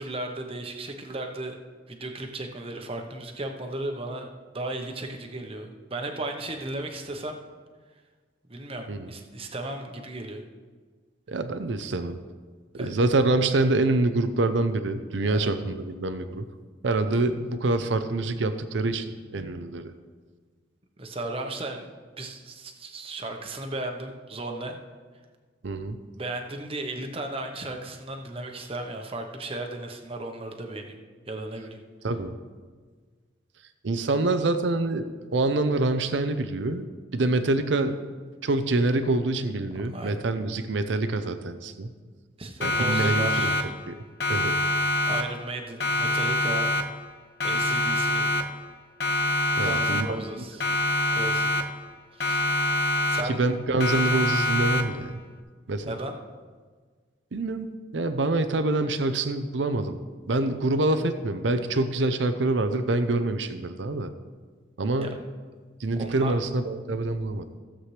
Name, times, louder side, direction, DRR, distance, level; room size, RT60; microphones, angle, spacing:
voice 1, 0.0-1.6 1.9-4.3 4.5-7.4 8.5-10.4 12.8-12.9 15.3-15.5 21.0-21.9 22.2-24.8 26.1-31.0 31.3-31.8 39.8-40.2 42.4-43.7 45.0-46.7 47.4-48.3 49.6-50.7 51.1-51.7 52.1-52.4 53.1-53.4 55.8-56.2 65.0-65.1 66.0-66.4, right 2 dB, 30° right, 4 dB, 0.9 m, -35 dB
voice 2, 11.3-12.2 12.7-16.5 16.8-19.0 19.3-19.9 25.6-26.0 32.0-32.3 33.8-35.1 35.3-36.9 37.1-38.0 38.4-41.9 42.6-43.5 43.9-44.0 44.3-44.6 49.6-50.2 53.4-55.2 55.7-55.9 57.3-60.0 60.3-64.1 64.8-65.2 65.8-67.4, right 2 dB, 70° right, 10 dB, 0.6 m, -26 dB
Siren, 42.6-43.9 44.2-45.5 45.8-47.1 47.4-48.7 49.0-50.3 50.6-51.9 52.2-53.5 53.8-55.1, left 1 dB, 55° left, 0.8 m, -26 dB
15.5 x 7.5 x 3.3 m, 1.5 s
head